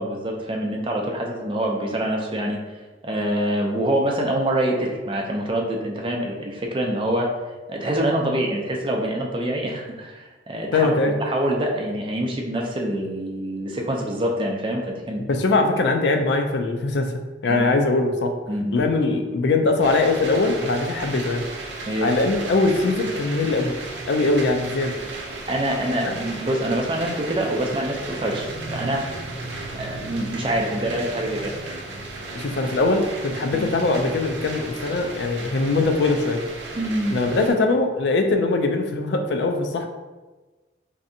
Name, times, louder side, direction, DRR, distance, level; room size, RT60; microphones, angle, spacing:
voice 1, 0.0-2.6 3.0-7.3 7.7-10.9 11.2-15.2 17.5-17.6 18.5-18.8 21.9-22.1 25.5-29.2 29.7-31.5 33.5-33.7 36.7-37.2, right 1 dB, 30° right, 0 dB, 0.4 m, -25 dB
voice 2, 10.7-11.2 15.3-17.1 17.4-18.3 18.7-21.4 22.0-23.7 24.1-25.0 26.0-26.1 32.4-36.4 37.1-39.9, left 3 dB, 70° left, 5 dB, 0.4 m, -21 dB
sound 1, 19.8-37.5, right 2 dB, 90° right, 0.5 m, -34 dB
3.2 x 2.7 x 2.6 m, 1.2 s
head